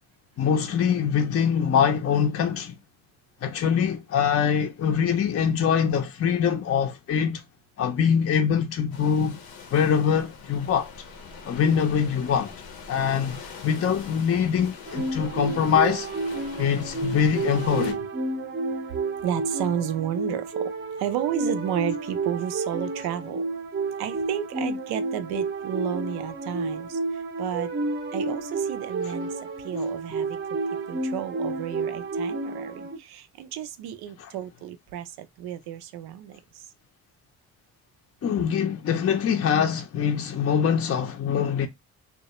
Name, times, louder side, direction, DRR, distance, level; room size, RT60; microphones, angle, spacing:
voice 1, 0.4-2.8 3.4-7.4 7.8-9.4 9.7-10.9 11.4-12.5 12.9-16.1 16.6-18.0 34.2-34.3 38.2-41.7, left 7 dB, 40° left, 0.5 m, -23 dB
sound 1, 8.9-17.9, left 5 dB, 85° left, 0.7 m, -43 dB
sound 2, 14.9-33.0, right 3 dB, 30° right, 0.5 m, -30 dB
voice 2, 19.2-20.7 21.0-23.4 24.0-27.7 28.1-30.4 30.9-36.7, right 10 dB, 85° right, 0.5 m, -32 dB
2.2 x 2.0 x 2.9 m
supercardioid pair, 55°, 37 cm